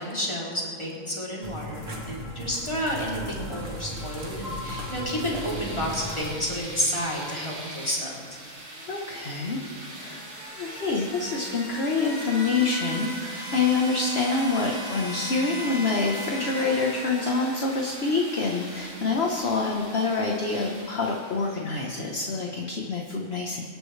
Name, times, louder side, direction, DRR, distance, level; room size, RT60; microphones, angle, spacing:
voice 1, 0.0-8.4, equal, 20° left, -5 dB, 3.4 m, -30 dB
sound 1, 1.4-6.3, equal, 60° right, 2.2 m, -36 dB
sound 2, 3.3-21.9, equal, 80° right, 3.7 m, -39 dB
voice 2, 8.9-9.6 9.9-10.2 10.5-23.6, left 3 dB, 50° left, 0 dB, 1.5 m, -26 dB
24.0 x 11.5 x 3.4 m, 2.3 s
omnidirectional pair, 1.5 m